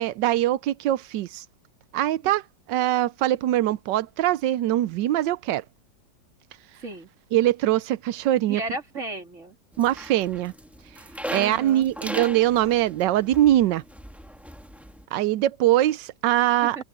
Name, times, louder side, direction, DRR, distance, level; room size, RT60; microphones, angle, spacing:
voice 1, 0.0-1.4 1.9-2.4 2.7-5.6 7.3-8.6 9.8-10.5 11.3-13.8 15.1-16.8, right 13 dB, 80° right, 1.3 m, -22 dB
voice 2, 8.5-9.6 11.3-11.9 16.6-16.8, right 2 dB, 40° right, 3.6 m, -34 dB
sound 1, 9.7-15.0, equal, ahead, 1.3 m, -38 dB
omnidirectional pair, 1.9 m